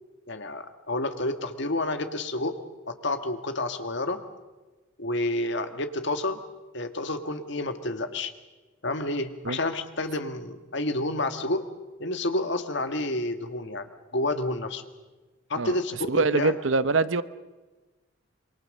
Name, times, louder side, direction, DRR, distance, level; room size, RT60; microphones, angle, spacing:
voice 1, 0.3-2.6 2.9-4.2 5.0-6.4 6.7-8.3 8.8-11.6 12.0-14.8 15.5-16.5, left 2 dB, 60° left, 8 dB, 1.8 m, -29 dB
voice 2, 16.1-17.2, right 3 dB, 65° right, 15 dB, 0.8 m, -24 dB
26.5 x 23.5 x 6.6 m, 1.2 s
head